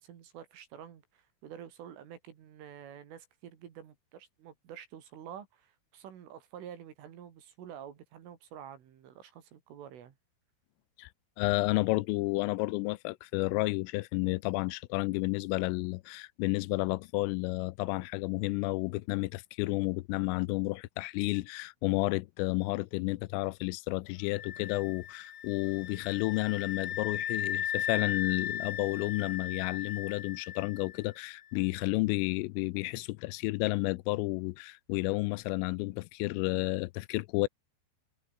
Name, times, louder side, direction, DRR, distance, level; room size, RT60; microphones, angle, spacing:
voice 1, 0.0-10.2, right 9 dB, 70° right, 5.2 m, -48 dB
voice 2, 11.4-37.5, left 22 dB, 85° left, 3.2 m, -31 dB
sound 1, 24.3-31.1, left 10 dB, 55° left, 3.5 m, -37 dB
omnidirectional pair, 6.0 m